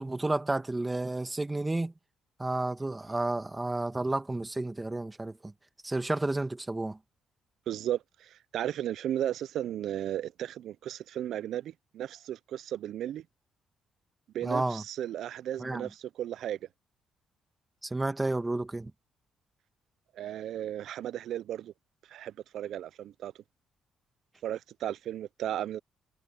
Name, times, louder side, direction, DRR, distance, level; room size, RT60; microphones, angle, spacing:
voice 1, 0.0-1.9 2.4-5.5 5.8-7.0 14.4-14.8 15.6-15.9 17.8-18.9, right 2 dB, 15° right, 1.8 m, -31 dB
voice 2, 7.7-13.2 14.3-16.6 20.2-21.7 22.1-23.3 24.4-25.8, right 11 dB, 75° right, 0.4 m, -35 dB
cardioid pair, 90°, 0 cm